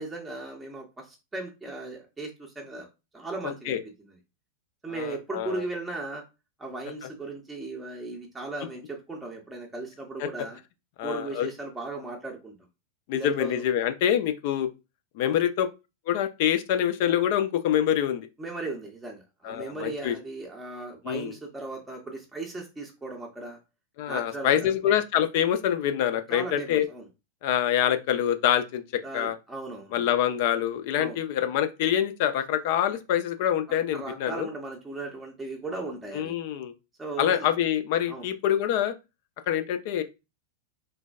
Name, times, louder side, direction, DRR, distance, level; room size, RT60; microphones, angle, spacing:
voice 1, 0.0-2.9 3.1-4.1 4.8-6.2 6.6-10.6 11.0-12.5 13.1-13.6 15.2-15.4 18.4-23.6 24.1-24.7 26.3-27.1 29.0-30.0 31.0-31.2 33.9-36.3 37.0-37.5 38.1-38.3, right 2 dB, 10° right, 0.6 m, -37 dB
voice 2, 3.4-3.8 4.9-5.6 10.2-10.3 11.0-11.5 13.1-14.7 15.2-15.7 16.1-18.3 19.4-20.1 21.0-21.3 24.0-26.9 27.4-28.8 29.1-29.4 29.9-34.5 36.1-36.7 37.2-38.9 39.5-40.0, left 10 dB, 50° left, 0.3 m, -25 dB
3.2 x 2.1 x 2.3 m
figure-of-eight pair, 90°, 0 cm